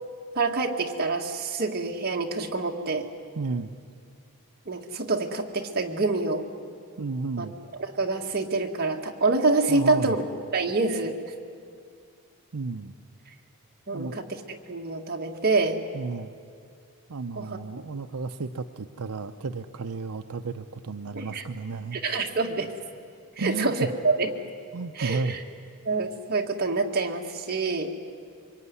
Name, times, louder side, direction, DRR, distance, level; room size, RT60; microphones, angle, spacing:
voice 1, 0.3-3.1 4.7-6.4 7.4-7.5 7.8-10.2 10.5-11.2 13.9-15.8 17.4-17.6 21.1-21.4 21.9-22.7 23.4-24.3 25.0-25.4 25.8-28.0, right 3 dB, 45° right, 1 dB, 2.0 m, -26 dB
voice 2, 3.4-3.7 7.0-7.5 9.7-10.2 12.5-12.9 13.9-14.2 15.9-16.3 17.1-22.0 23.4-23.9 24.7-25.4, right 4 dB, 80° right, 8 dB, 0.7 m, -32 dB
25.0 x 22.5 x 9.7 m, 2.3 s
head